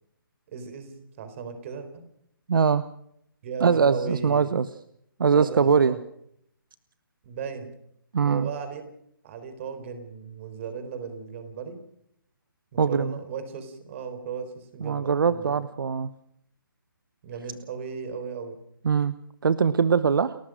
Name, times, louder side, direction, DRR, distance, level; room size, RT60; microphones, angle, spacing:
voice 1, 0.5-2.0 3.4-4.6 5.3-6.0 7.2-7.7 8.3-8.8 9.2-11.8 12.7-15.6 17.2-18.6, right 5 dB, 35° right, 9 dB, 4.1 m, -36 dB
voice 2, 2.5-2.8 3.6-4.7 5.2-5.9 8.1-8.5 12.8-13.2 14.8-16.1 18.8-19.1 19.4-20.4, right 6 dB, 65° right, 15 dB, 0.9 m, -22 dB
29.5 x 14.0 x 6.4 m, 0.72 s
hypercardioid pair, 155°, 12 cm